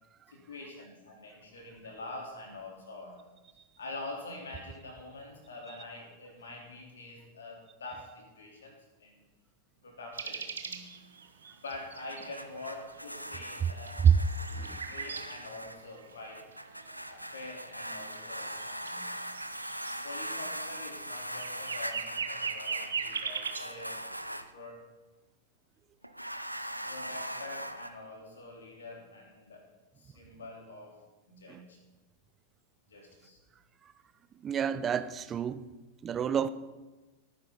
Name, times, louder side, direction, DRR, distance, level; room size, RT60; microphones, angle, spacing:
voice 1, 0.3-3.3 3.8-9.2 9.8-10.9 11.6-14.0 14.9-16.5 17.0-19.1 20.0-24.0 24.5-24.9 26.8-29.7 30.0-31.0 31.3-31.8 32.9-33.4, left 2 dB, 65° left, 3.8 m, -45 dB
sound 1, 10.1-12.3 13.0-13.1 13.4-15.3 15.7-23.6, right 6 dB, 70° right, 1.4 m, -39 dB
sound 2, 11.8-24.5 26.0-27.9, right 1 dB, 90° right, 0.7 m, -41 dB
voice 2, 34.4-35.7 36.0-36.5, right 8 dB, 25° right, 0.6 m, -26 dB
18.5 x 9.8 x 4.1 m
figure-of-eight pair, 90°, 0 cm